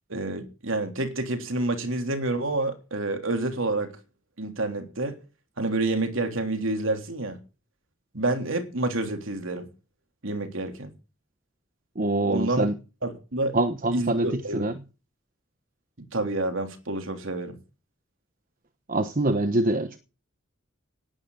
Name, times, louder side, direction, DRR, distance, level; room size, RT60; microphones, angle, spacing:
voice 1, 0.1-3.9 4.4-5.2 5.6-7.4 8.1-9.7 10.2-10.9 12.2-12.7 13.0-13.5 13.9-14.6 16.1-17.6, right 2 dB, 75° right, 3.4 m, -28 dB
voice 2, 12.0-12.7 13.5-14.7 18.9-20.0, right 2 dB, 45° right, 1.1 m, -25 dB
18.5 x 12.5 x 4.0 m
head